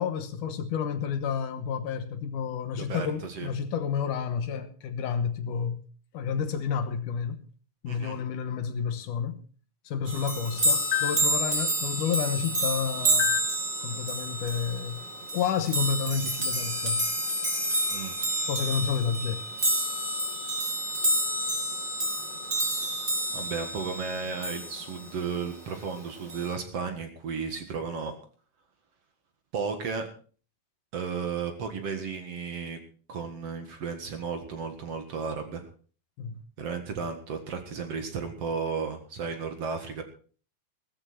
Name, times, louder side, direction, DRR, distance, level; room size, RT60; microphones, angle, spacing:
voice 1, 0.0-5.8 6.1-7.5 7.8-9.4 9.8-13.5 13.8-15.0 15.3-17.1 18.5-19.5 36.2-36.4, left 7 dB, 70° left, 2.5 m, -30 dB
voice 2, 2.8-3.5 7.9-8.2 17.9-18.2 23.3-28.1 29.5-30.1 30.9-32.8 33.1-35.7 36.6-40.0, right 5 dB, 50° right, 2.5 m, -34 dB
sound 1, 10.1-25.1 26.3-26.5, right 1 dB, 25° right, 3.8 m, -29 dB
16.0 x 13.5 x 4.4 m
omnidirectional pair, 3.9 m